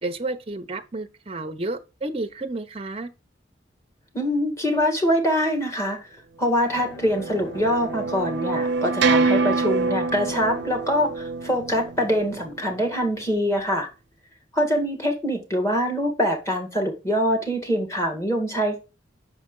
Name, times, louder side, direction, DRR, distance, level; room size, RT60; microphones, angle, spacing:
voice 1, 0.0-3.1, right 2 dB, 30° right, 0.7 m, -31 dB
voice 2, 4.1-6.0 6.4-13.9 14.5-18.8, equal, 15° left, 1.8 m, -24 dB
sound 1, 6.5-12.9, right 4 dB, 70° right, 0.6 m, -26 dB
Bowed string instrument, 6.6-11.0, left 1 dB, 75° left, 2.6 m, -43 dB
6.0 x 4.9 x 3.7 m
head